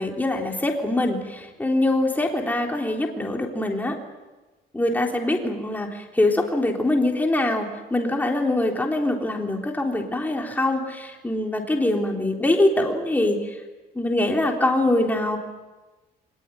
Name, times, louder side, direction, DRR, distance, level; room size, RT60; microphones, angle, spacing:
voice 1, 0.0-4.0 4.7-13.6 13.9-15.4, left 1 dB, 10° left, 1 dB, 3.7 m, -23 dB
23.5 x 20.0 x 9.2 m, 1.2 s
cardioid pair, 110°, 17 cm